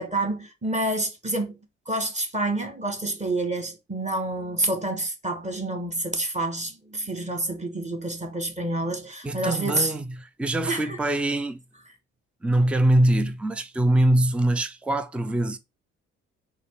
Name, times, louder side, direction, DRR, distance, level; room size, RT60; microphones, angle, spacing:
voice 1, 0.0-1.6 1.8-9.9 10.7-11.0, right 2 dB, 20° right, 1.5 m, -28 dB
voice 2, 9.2-11.6 12.4-15.6, right 1 dB, 5° right, 0.5 m, -23 dB
4.1 x 2.3 x 4.6 m
hypercardioid pair, 50°, 35 cm